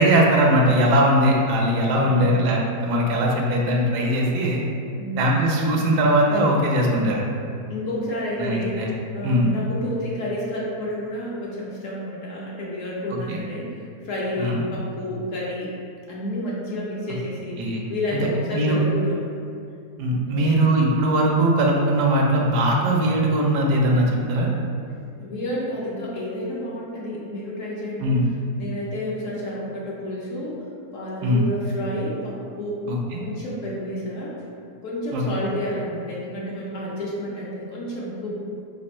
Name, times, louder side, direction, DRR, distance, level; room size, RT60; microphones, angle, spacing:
voice 1, 0.0-4.6 5.2-7.2 8.4-8.9 9.2-9.5 13.1-13.4 14.4-14.6 17.6-17.8 18.5-18.8 20.0-24.5 28.0-28.2 31.2-31.4 32.9-33.2 35.1-35.2, right 1 dB, 80° right, -1 dB, 1.2 m, -20 dB
voice 2, 1.9-2.4 5.0-5.3 7.7-8.8 9.1-13.8 14.0-15.7 16.1-19.2 20.3-20.6 25.2-28.2 28.6-30.6 30.9-32.8 33.2-34.4 34.8-38.4, left 1 dB, 60° left, -5 dB, 0.9 m, -30 dB
4.2 x 2.4 x 4.2 m, 2.4 s
omnidirectional pair, 1.8 m